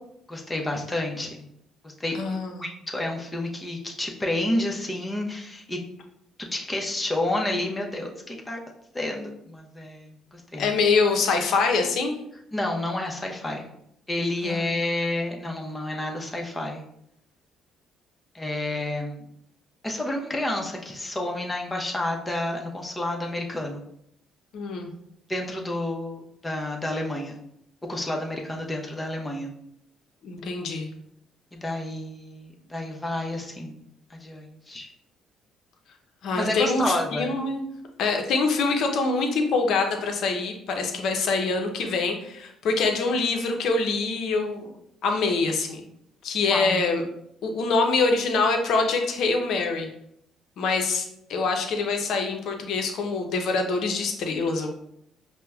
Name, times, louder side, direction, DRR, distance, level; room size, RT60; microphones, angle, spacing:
voice 1, 0.3-1.4 1.8-5.8 6.5-8.6 8.9-10.7 12.5-13.7 14.1-16.8 18.3-19.3 19.8-23.8 25.3-27.4 27.9-29.5 31.5-33.8 34.1-34.9 36.3-37.3 46.5-46.8, left 1 dB, 20° left, 1 dB, 0.7 m, -30 dB
voice 2, 2.1-2.6 10.6-12.1 14.4-14.6 24.5-24.9 30.2-30.9 36.2-37.6 38.0-44.7 45.0-45.8 46.2-47.0 47.4-49.9 50.6-54.7, left 4 dB, 70° left, 3 dB, 0.6 m, -25 dB
5.3 x 2.1 x 2.3 m, 0.75 s
supercardioid pair, 70°, 0 cm